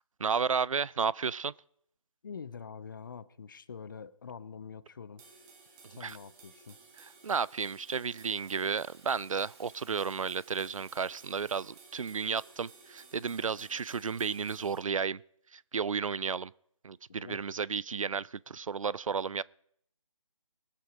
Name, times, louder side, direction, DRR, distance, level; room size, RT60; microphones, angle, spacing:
voice 1, 0.2-1.5 6.0-6.2 7.0-15.2 15.5-16.5 16.8-19.4, right 6 dB, 75° right, 0.4 m, -33 dB
voice 2, 2.2-5.2 5.9-6.8 17.1-17.4, left 6 dB, 40° left, 0.6 m, -45 dB
sound 1, 5.2-14.8, right 4 dB, 10° right, 1.4 m, -56 dB
Rattle (instrument), 6.7-12.6, right 5 dB, 50° right, 1.5 m, -64 dB
20.0 x 8.4 x 5.0 m
figure-of-eight pair, 155°, 17 cm